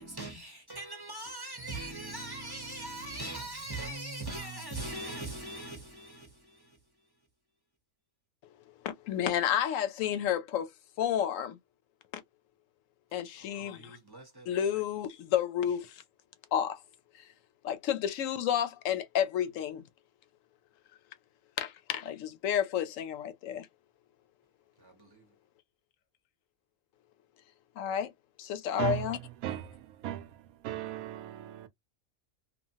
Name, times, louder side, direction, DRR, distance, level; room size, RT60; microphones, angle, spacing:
voice 1, 0.0-6.8 13.4-14.6 24.8-25.3, right 2 dB, 20° right, 0.7 m, -41 dB
voice 2, 8.8-10.7 11.0-11.6 12.1-12.2 13.1-14.0 14.5-16.0 16.5-16.8 17.1-17.2 17.6-19.8 21.6-23.7 27.8-28.1 28.4-29.2, left 9 dB, 75° left, 1.0 m, -31 dB
voice 3, 29.4-30.3 30.6-31.7, right 12 dB, 90° right, 1.0 m, -36 dB
3.0 x 2.3 x 2.7 m
omnidirectional pair, 1.4 m